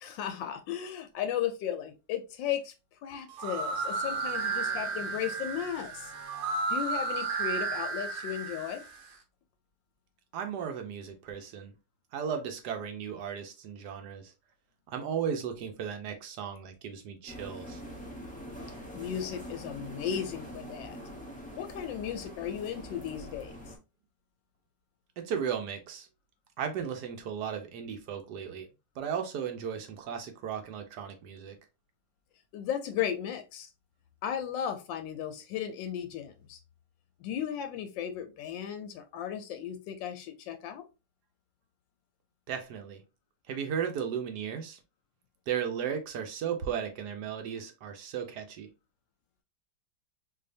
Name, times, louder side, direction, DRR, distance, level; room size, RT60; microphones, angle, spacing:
voice 1, 0.0-2.7 3.0-6.1 6.7-8.8 18.9-21.0 21.6-23.5 32.5-33.7 34.2-36.6 37.2-40.9, left 9 dB, 80° left, 1.3 m, -35 dB
sound 1, 3.3-9.1, right 4 dB, 85° right, 1.6 m, -33 dB
voice 2, 10.3-11.7 12.1-14.3 14.9-17.8 25.2-26.1 26.6-28.7 29.0-31.6 42.5-43.0 43.5-44.8 45.5-48.7, right 8 dB, 65° right, 1.2 m, -35 dB
sound 2, 17.3-23.8, equal, 10° left, 0.3 m, -44 dB
4.4 x 2.7 x 2.6 m
omnidirectional pair, 2.0 m